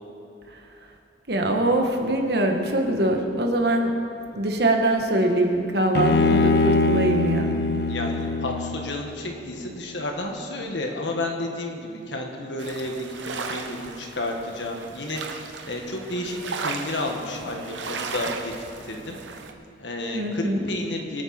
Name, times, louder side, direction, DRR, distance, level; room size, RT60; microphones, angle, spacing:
voice 1, 1.3-3.9 4.3-7.5 20.1-20.6, right 1 dB, 60° right, 3 dB, 1.4 m, -23 dB
Bowed string instrument, 5.9-9.2, left 2 dB, 60° left, 0.5 m, -22 dB
voice 2, 7.9-18.5 18.8-19.2 19.8-21.2, left 1 dB, 80° left, 2 dB, 1.8 m, -31 dB
sound 1, 12.6-19.5, right 4 dB, 85° right, 1.0 m, -36 dB
23.5 x 9.0 x 4.4 m, 2.5 s
head